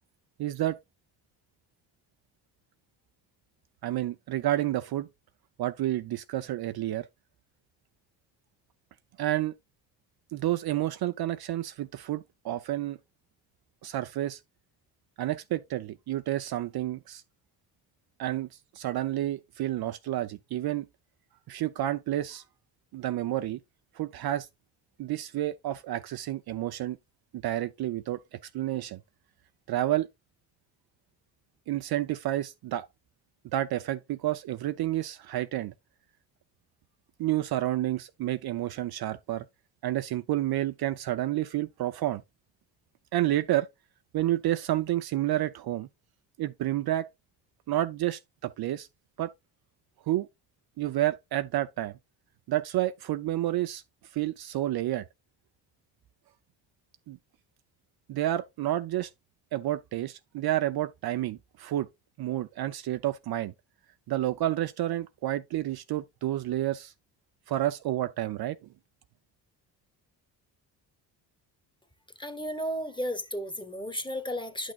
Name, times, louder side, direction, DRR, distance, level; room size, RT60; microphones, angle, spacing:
voice 1, 0.4-0.8 3.8-5.1 5.6-7.1 9.2-9.5 10.3-13.0 13.8-14.4 15.2-17.2 18.2-18.5 18.7-20.9 21.5-22.4 22.9-23.6 24.0-24.5 25.0-27.0 27.4-28.2 28.5-29.0 29.7-30.1 31.7-32.9 33.5-35.7 37.2-39.4 39.8-42.2 43.1-43.7 44.1-45.9 46.4-47.1 47.7-48.9 49.2-49.3 50.1-50.3 50.8-51.9 52.5-53.8 54.1-55.0 57.1-57.2 58.1-59.1 59.5-61.9 62.2-63.5 64.1-66.9 67.5-68.6, right 14 dB, 55° right, 0.6 m, -30 dB
voice 2, 72.2-74.7, equal, 10° left, 1.3 m, -33 dB
10.5 x 6.2 x 2.3 m
hypercardioid pair, 55°, 46 cm